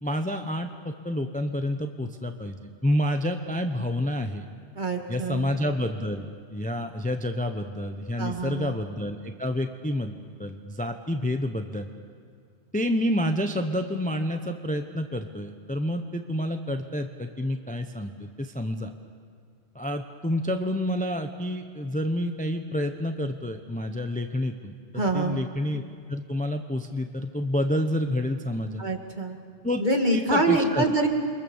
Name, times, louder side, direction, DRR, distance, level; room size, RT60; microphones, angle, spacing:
voice 1, 0.0-2.6 2.8-4.4 5.1-11.9 12.7-18.9 19.7-25.8 26.1-28.8 29.6-29.8 30.1-30.8, left 1 dB, 5° left, 6 dB, 0.8 m, -29 dB
voice 2, 4.8-5.5 8.2-8.7 25.0-25.4 28.8-29.4 29.8-31.1, right 2 dB, 40° right, 3 dB, 2.4 m, -25 dB
29.0 x 23.5 x 7.2 m, 2.2 s
omnidirectional pair, 1.3 m